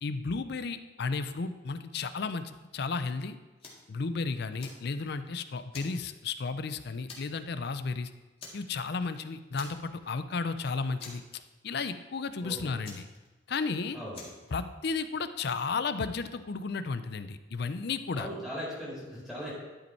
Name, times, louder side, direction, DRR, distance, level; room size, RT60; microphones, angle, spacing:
voice 1, 0.0-3.4 3.9-8.1 8.5-13.1 13.5-14.0 14.5-18.3, left 4 dB, 60° left, 12 dB, 0.5 m, -33 dB
Fire, 3.6-3.9 4.3-5.3 5.7-6.6 7.1-7.5 7.8-7.9 8.4-9.1 9.5-10.1 10.4-10.5 11.0-11.8 12.8-13.7 14.1-14.5, left 3 dB, 30° left, 1.9 m, -48 dB
voice 2, 12.4-12.7 13.9-14.3 18.1-19.5, equal, ahead, -8 dB, 2.3 m, -39 dB
11.5 x 5.3 x 4.4 m, 1.2 s
head